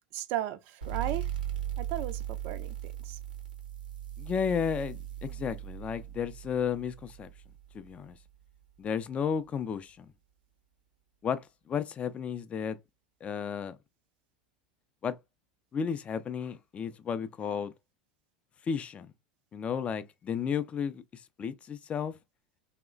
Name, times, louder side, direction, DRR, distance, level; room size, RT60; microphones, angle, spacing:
voice 1, 0.1-1.3 1.8-3.2, right 12 dB, 50° right, 0.4 m, -36 dB
sound 1, 0.8-8.1, right 11 dB, 85° right, 0.7 m, -38 dB
voice 2, 4.2-7.3 7.7-8.2 8.8-10.1 11.2-12.8 13.2-13.8 15.0-15.2 15.7-17.7 18.7-19.1 19.5-22.1, left 7 dB, 25° left, 0.3 m, -33 dB
3.0 x 2.0 x 2.2 m
figure-of-eight pair, 85°, 5 cm